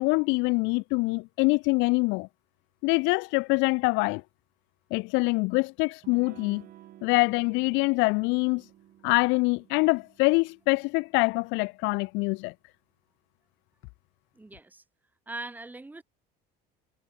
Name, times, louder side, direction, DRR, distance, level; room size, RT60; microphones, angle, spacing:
voice 1, 0.0-2.3 2.8-4.2 4.9-6.6 7.0-8.6 9.0-12.5, left 27 dB, 75° left, 1.0 m, -25 dB
Electric guitar / Strum, 6.0-11.4, right 13 dB, 50° right, 5.3 m, -53 dB
voice 2, 14.3-14.8 15.3-16.0, right 2 dB, 10° right, 7.9 m, -40 dB
cardioid pair, 155°, 20 cm